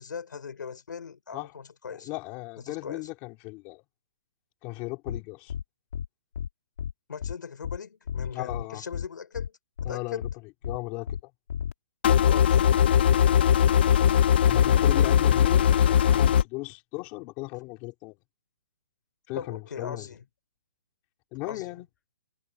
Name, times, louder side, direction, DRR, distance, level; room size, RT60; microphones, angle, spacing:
voice 1, 0.0-2.1 2.7-3.1 7.1-10.3 12.2-12.7 19.3-20.2 21.4-21.7, left 6 dB, 85° left, 5.2 m, -39 dB
voice 2, 2.0-3.8 4.6-5.5 8.3-8.8 9.8-10.3 10.6-11.3 14.5-18.2 19.3-20.1 21.3-21.9, left 23 dB, 15° left, 3.8 m, -36 dB
sound 1, 5.1-5.2 5.5-5.6 5.9-6.1 6.3-6.5 6.8-6.9 7.2-7.3 7.6-7.8 8.1-8.6 8.9-9.1 9.3-9.5 9.8-9.9 10.2-10.3 10.6-10.8 11.1-11.2 11.5-11.7, left 8 dB, 55° left, 3.4 m, -33 dB
sound 2, 12.0-16.4, left 9 dB, 35° left, 0.8 m, -20 dB
hypercardioid pair, 180°, 10 cm